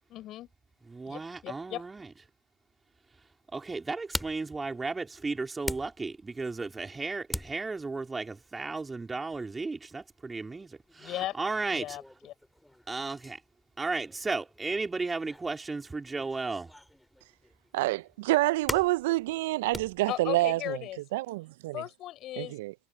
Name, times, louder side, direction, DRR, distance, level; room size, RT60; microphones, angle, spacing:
voice 1, 0.1-0.5 1.1-1.8 11.0-11.4 11.7-12.3 20.1-21.0 21.7-22.6, left 14 dB, 45° left, 5.9 m, -37 dB
voice 2, 0.9-2.1 3.5-12.0 12.9-13.4 13.8-16.7, right 3 dB, 15° right, 4.0 m, -34 dB
sound 1, 3.3-21.0, left 1 dB, 5° left, 5.1 m, -44 dB
voice 3, 17.7-20.8 21.1-21.8 22.4-22.7, right 19 dB, 70° right, 0.5 m, -28 dB
hypercardioid pair, 85°, 0 cm